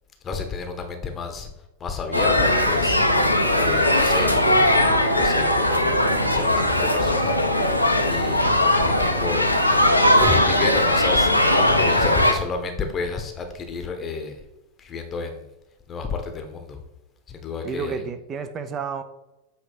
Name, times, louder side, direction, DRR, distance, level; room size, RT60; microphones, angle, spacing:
voice 1, 0.2-1.5 1.8-3.0 3.6-6.0 6.3-7.4 7.8-9.5 10.2-11.3 11.6-14.4 14.8-15.4 15.9-16.8 17.3-18.1, left 4 dB, 25° left, 5 dB, 1.0 m, -31 dB
sound 1, 2.1-12.3, left 1 dB, 90° left, 0.7 m, -19 dB
voice 2, 17.6-19.0, right 6 dB, 30° right, 9 dB, 0.7 m, -31 dB
8.0 x 3.2 x 5.0 m, 0.97 s
figure-of-eight pair, 90°, 0 cm